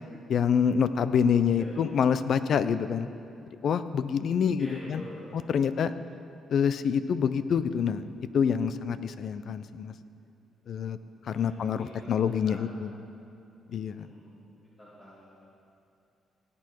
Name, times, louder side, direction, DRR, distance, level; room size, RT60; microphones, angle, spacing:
voice 1, 0.3-3.1 3.6-5.0 5.5-5.9 6.5-8.1 8.3-9.9 10.7-11.0 11.3-12.9 13.7-14.1, left 7 dB, 60° left, 13 dB, 0.6 m, -26 dB
voice 2, 1.5-1.8 4.6-5.5 11.3-12.7 13.9-14.3 14.6-15.5, left 1 dB, 25° left, -8 dB, 2.7 m, -47 dB
17.5 x 8.6 x 4.6 m, 2.7 s
cardioid pair, 90°, 0 cm